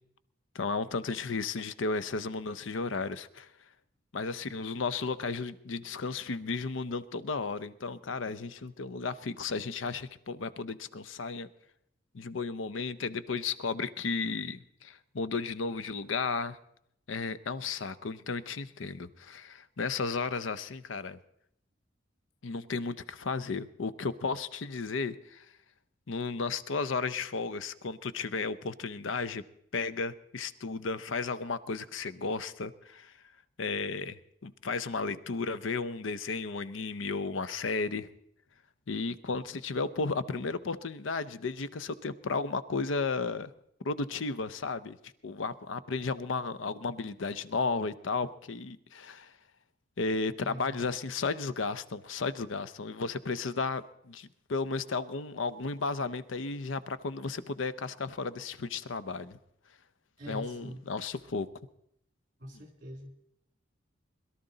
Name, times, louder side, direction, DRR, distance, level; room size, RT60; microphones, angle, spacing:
voice 1, 0.5-3.5 4.1-11.5 12.1-16.6 17.1-21.2 22.4-25.5 26.1-29.4 29.7-33.1 33.6-38.1 38.9-43.5 43.8-45.0 45.2-49.3 50.0-59.4 60.3-61.5, left 4 dB, 90° left, 16 dB, 0.6 m, -34 dB
voice 2, 50.5-50.8 60.2-60.8 62.4-63.2, equal, 45° right, 5 dB, 2.7 m, -43 dB
22.0 x 12.5 x 3.9 m, 0.74 s
head